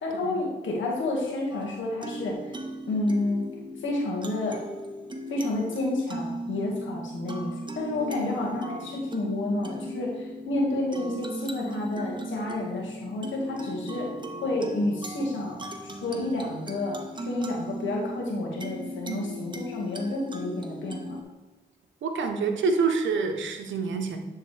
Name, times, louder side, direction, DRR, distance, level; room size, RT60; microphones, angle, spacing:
voice 1, 0.0-2.6 2.9-3.5 3.8-4.6 5.3-14.1 14.4-15.6 16.0-21.2, left 2 dB, 80° left, -2 dB, 1.8 m, -30 dB
sound 1, 1.5-21.2, right 1 dB, 25° right, 1.0 m, -38 dB
voice 2, 8.0-8.4 19.0-19.4 22.0-24.2, right 4 dB, 80° right, 5 dB, 0.8 m, -28 dB
9.9 x 3.8 x 3.3 m, 1.2 s
supercardioid pair, 50°, 19 cm